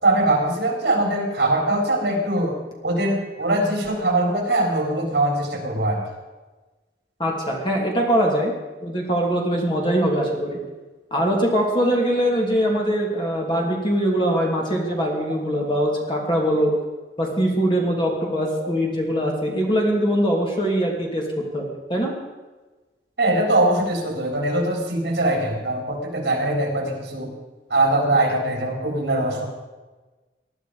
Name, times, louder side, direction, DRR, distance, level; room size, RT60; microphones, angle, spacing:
voice 1, 0.0-2.5 2.8-6.0 18.6-18.8 23.2-27.3 27.7-29.5, right 1 dB, 70° right, 1 dB, 4.0 m, -22 dB
voice 2, 7.2-8.5 8.8-10.6 11.1-16.7 17.2-21.3 21.5-21.6 21.9-22.1, equal, 25° left, -1 dB, 2.9 m, -22 dB
20.0 x 12.0 x 5.1 m, 1.2 s
head